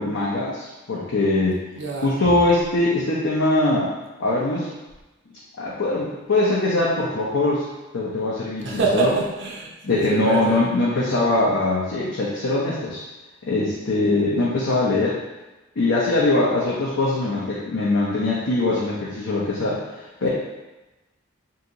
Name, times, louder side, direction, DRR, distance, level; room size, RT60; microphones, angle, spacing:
voice 1, 0.0-1.6 2.0-3.9 4.2-4.7 5.6-7.7 7.9-9.1 9.8-13.0 13.5-15.2 15.8-19.8 20.2-20.3, left 2 dB, 85° left, -6 dB, 0.6 m, -22 dB
voice 2, 1.8-2.1 8.6-10.6 20.2-20.3, right 4 dB, 65° right, -2 dB, 0.7 m, -25 dB
2.8 x 2.6 x 3.8 m, 1.1 s
head